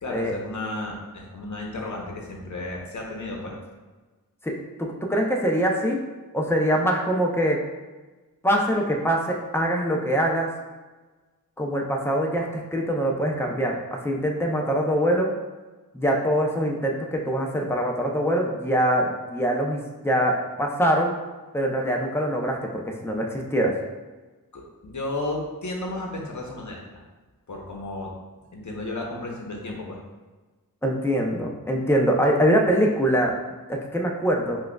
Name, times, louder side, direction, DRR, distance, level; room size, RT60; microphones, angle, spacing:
voice 1, 0.0-3.5 24.5-27.0 27.5-28.1 28.5-30.0, left 2 dB, 55° left, -1 dB, 0.9 m, -33 dB
voice 2, 4.8-6.0 6.3-7.6 8.4-10.5 11.6-15.3 15.9-21.1 21.5-23.7 30.8-33.3 33.7-34.6, equal, 5° left, 0 dB, 0.5 m, -23 dB
6.1 x 2.4 x 2.2 m, 1.3 s
wide cardioid pair, 75°, 35 cm